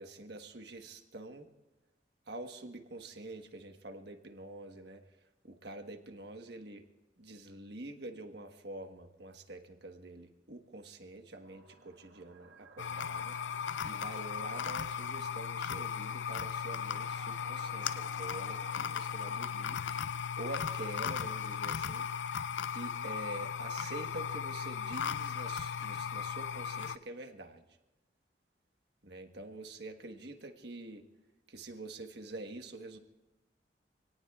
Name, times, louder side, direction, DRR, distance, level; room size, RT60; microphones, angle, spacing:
voice 1, 0.0-1.5 2.3-5.0 5.4-6.9 7.2-19.8 20.4-22.4 22.7-27.6 29.0-31.1 31.5-33.0, right 2 dB, 70° right, 5 dB, 1.3 m, -46 dB
sound 1, 11.4-21.5, right 3 dB, 90° right, 1.2 m, -57 dB
sound 2, 12.8-27.0, left 7 dB, 85° left, 0.4 m, -37 dB
27.0 x 18.5 x 2.4 m, 1.0 s
head